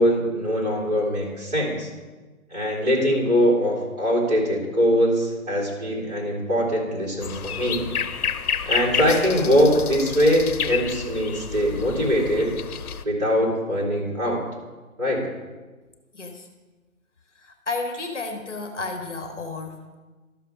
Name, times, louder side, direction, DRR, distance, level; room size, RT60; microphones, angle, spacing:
voice 1, 0.0-1.9 2.5-7.8 8.6-12.5 13.0-14.4 15.0-15.2, equal, 25° right, -5 dB, 3.0 m, -22 dB
sound 1, 7.2-13.0, left 7 dB, 90° left, 0.7 m, -30 dB
voice 2, 16.1-16.5 17.3-20.0, left 3 dB, 55° left, 5 dB, 1.1 m, -32 dB
12.5 x 6.6 x 3.7 m, 1.3 s
hypercardioid pair, 175°, 43 cm